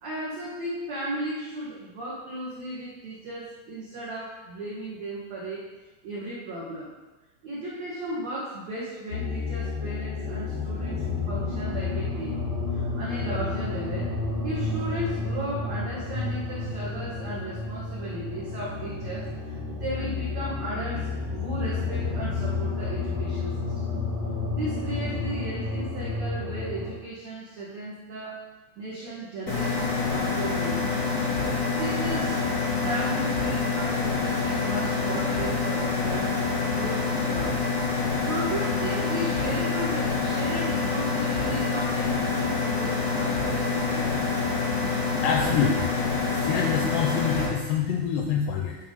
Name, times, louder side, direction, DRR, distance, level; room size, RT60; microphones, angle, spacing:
voice 1, 0.0-5.7 6.0-6.9 7.4-12.4 12.7-14.1 14.4-23.9 24.5-28.4 28.8-31.1 31.8-32.4 32.8-37.6 38.2-44.2, right 1 dB, 80° right, -7 dB, 1.5 m, -35 dB
sound 1, 9.1-26.9, left 3 dB, 60° right, 1.6 m, -31 dB
sound 2, 29.5-47.4, left 4 dB, 50° left, 1.1 m, -26 dB
voice 2, 45.2-45.9 46.3-48.8, left 7 dB, 85° left, 2 dB, 2.4 m, -26 dB
9.7 x 4.1 x 5.2 m, 1.2 s
omnidirectional pair, 5.3 m